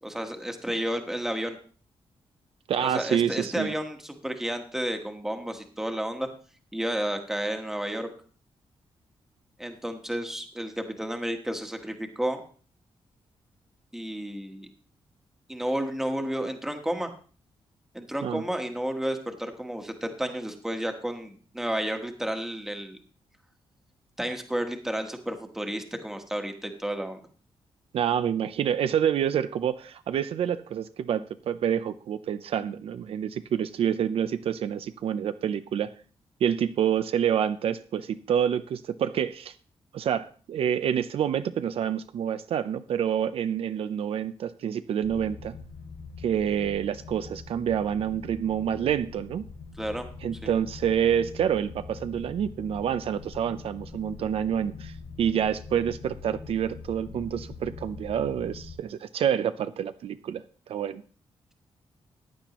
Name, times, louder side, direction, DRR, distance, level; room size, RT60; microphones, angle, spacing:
voice 1, 0.0-1.6 2.8-6.3 6.7-8.1 9.6-12.4 13.9-14.7 15.5-17.1 17.9-23.0 24.2-27.2 49.8-50.1 50.4-50.5, right 1 dB, 5° right, 5 dB, 1.3 m, -31 dB
voice 2, 2.7-3.7 18.2-18.4 27.9-35.9 36.4-39.5 39.9-45.5 46.2-49.5 50.2-61.0, right 9 dB, 70° right, 12 dB, 0.5 m, -27 dB
sound 1, 45.0-58.8, left 4 dB, 90° left, 1.2 m, -43 dB
15.0 x 10.0 x 3.0 m, 0.40 s
wide cardioid pair, 165°, 10 cm